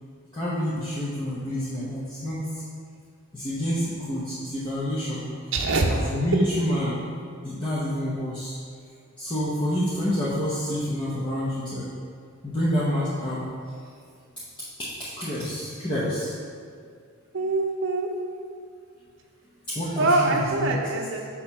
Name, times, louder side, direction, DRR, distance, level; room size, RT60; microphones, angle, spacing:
voice 1, 0.3-2.4 3.3-5.2 5.9-7.0 7.4-8.5 9.2-11.9 12.4-13.5 14.8-16.3 19.7-20.8, equal, 20° left, -9 dB, 0.8 m, -28 dB
voice 2, 5.5-6.0 17.3-18.1 20.0-21.3, right 2 dB, 60° right, 1 dB, 0.6 m, -24 dB
6.5 x 2.9 x 5.3 m, 2.2 s
head